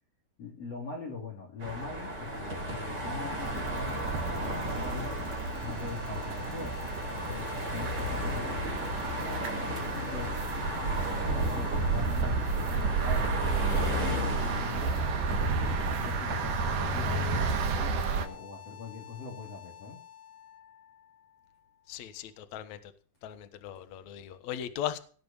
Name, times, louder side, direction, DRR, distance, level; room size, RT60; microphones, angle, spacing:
voice 1, 0.4-5.3 5.6-6.8 7.1-8.9 10.1-10.5 10.7-20.0, left 4 dB, 45° left, 0 dB, 3.9 m, -42 dB
sound 1, 1.6-16.8, equal, 25° right, 4.4 m, -35 dB
sound 2, 3.4-18.3, right 4 dB, 65° right, 3.0 m, -32 dB
sound 3, 5.3-22.3, left 10 dB, 85° left, 3.0 m, -49 dB
voice 2, 21.9-22.8 23.2-25.0, left 11 dB, 60° left, 9 dB, 2.3 m, -38 dB
18.5 x 6.1 x 7.2 m, 0.43 s
omnidirectional pair, 4.2 m